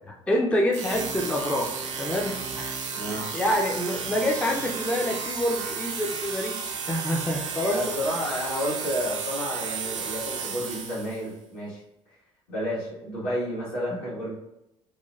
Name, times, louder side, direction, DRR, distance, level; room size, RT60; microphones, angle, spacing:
voice 1, 0.1-2.8 3.3-6.6 6.9-7.9, left 1 dB, 5° left, 0 dB, 0.4 m, -27 dB
sound 1, 0.7-11.3, right 6 dB, 75° right, 0.4 m, -33 dB
voice 2, 2.9-3.3 7.7-11.8 12.5-14.3, equal, 65° left, -8 dB, 1.4 m, -31 dB
2.9 x 2.1 x 2.3 m, 0.86 s
figure-of-eight pair, 50°, 16 cm